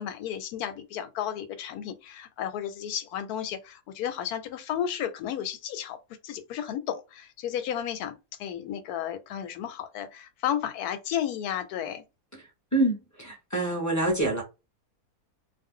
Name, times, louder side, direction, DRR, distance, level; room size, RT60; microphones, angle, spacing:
voice 1, 0.0-6.0 6.2-8.1 8.4-12.0, left 10 dB, 90° left, 1.1 m, -33 dB
voice 2, 12.7-14.4, right 2 dB, 15° left, 0.6 m, -26 dB
2.5 x 2.2 x 3.6 m
omnidirectional pair, 1.6 m